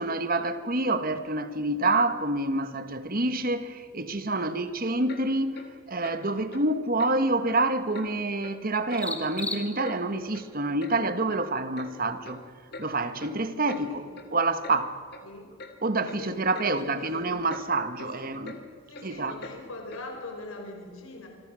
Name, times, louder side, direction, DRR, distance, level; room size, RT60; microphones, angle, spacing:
voice 1, 0.0-5.6 5.9-12.4 12.8-14.0 14.3-15.0 15.8-18.6 19.0-19.4, right 2 dB, 45° right, 1.5 m, -27 dB
sound 1, 3.7-10.2, left 2 dB, 5° left, 2.1 m, -43 dB
Clock, 5.1-5.2 5.5-5.7 6.0-6.2 6.5-6.6 7.0-7.1 7.5-7.6 7.9-8.1 8.4-8.6 8.9-9.0 9.4-10.0 10.3-10.4 10.8-10.9 11.3-11.4 11.8-11.9 12.2-12.4 12.7-12.9 13.2-13.4 13.7-13.8 14.1-14.3 14.6-14.8 15.1-15.2 15.6-15.7 16.1-16.2 16.5-16.7 17.0-17.2 17.5-17.7 17.9-18.1 18.4-18.6 18.9-19.1 19.4-19.6 19.9-20.0, left 2 dB, 50° left, 2.8 m, -43 dB
voice 2, 13.7-14.1 15.2-15.5 16.2-17.3 18.0-18.4 18.9-21.3, left 2 dB, 80° left, 4.8 m, -42 dB
27.0 x 24.5 x 6.3 m
head